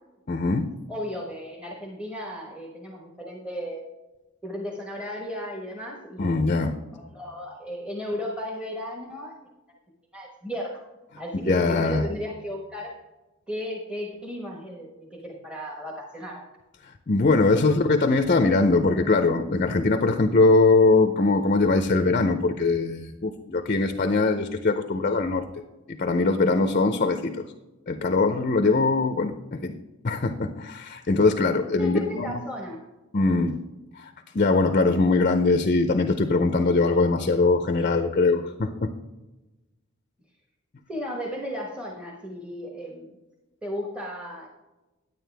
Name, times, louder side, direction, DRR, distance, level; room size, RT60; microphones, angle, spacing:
voice 1, 0.3-0.7 6.2-6.8 11.5-12.0 17.1-25.4 25.9-27.4 27.9-29.8 30.0-32.4 33.1-33.6 34.0-38.9, left 3 dB, 40° left, 8 dB, 0.5 m, -22 dB
voice 2, 0.9-3.8 4.4-6.4 6.9-9.3 10.1-10.8 11.2-12.9 13.5-16.4 17.5-17.8 31.8-32.8 37.7-37.9 40.9-43.1 43.6-44.5, equal, 5° right, -1 dB, 1.2 m, -35 dB
9.5 x 9.3 x 3.4 m, 1.1 s
head